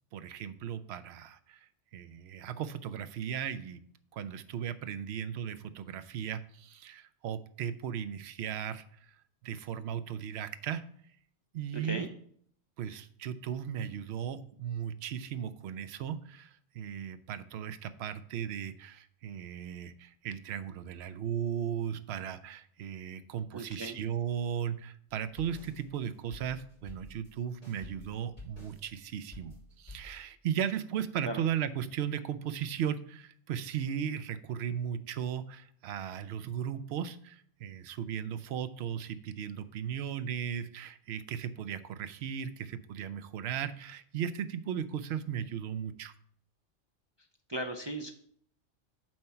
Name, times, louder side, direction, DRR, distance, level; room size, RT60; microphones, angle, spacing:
voice 1, 0.1-1.6 1.9-3.8 4.1-8.8 9.4-10.8 11.5-12.1 12.8-46.1, right 9 dB, 65° right, 12 dB, 0.8 m, -36 dB
voice 2, 11.7-12.1 23.5-24.0 31.2-31.4 47.5-48.1, right 1 dB, 35° right, 4 dB, 0.4 m, -37 dB
sound 1, 25.1-30.2, left 1 dB, 30° left, 3.4 m, -50 dB
7.7 x 4.4 x 5.7 m, 0.62 s
omnidirectional pair, 1.2 m